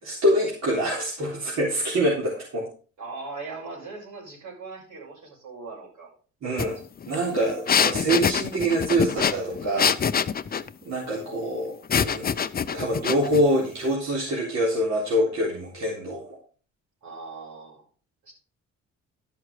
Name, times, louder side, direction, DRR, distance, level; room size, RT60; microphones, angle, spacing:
voice 1, 0.0-2.7 6.4-6.8 7.1-10.0 10.9-12.3 12.7-16.4, right 1 dB, 60° right, -4 dB, 3.6 m, -25 dB
voice 2, 3.0-6.1 17.0-17.9 18.2-18.3, right 3 dB, 80° right, -3 dB, 6.1 m, -39 dB
sound 1, 6.6-6.7 7.0-10.7 11.9-13.4, left 7 dB, 30° left, 0.6 m, -24 dB
12.0 x 5.7 x 4.9 m, 0.39 s
cardioid pair, 90°, 30 cm